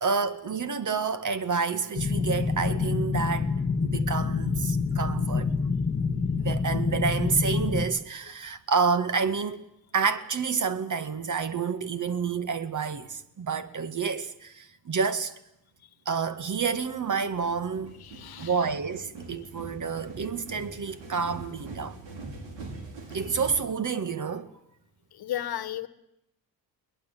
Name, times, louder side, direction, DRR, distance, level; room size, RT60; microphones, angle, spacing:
voice 1, 0.0-3.5 3.8-5.5 6.4-9.6 9.9-15.3 16.1-18.0 18.4-22.0 23.1-24.5, right 5 dB, 35° right, 2.1 m, -29 dB
sound 1, 2.0-7.9, left 4 dB, 25° left, 2.7 m, -27 dB
sound 2, 16.3-23.6, right 3 dB, 60° right, 5.8 m, -43 dB
voice 2, 18.0-18.7 19.4-19.5 23.2-23.3 25.1-25.9, left 12 dB, 50° left, 1.6 m, -35 dB
22.5 x 19.5 x 9.3 m
hypercardioid pair, 55°, 49 cm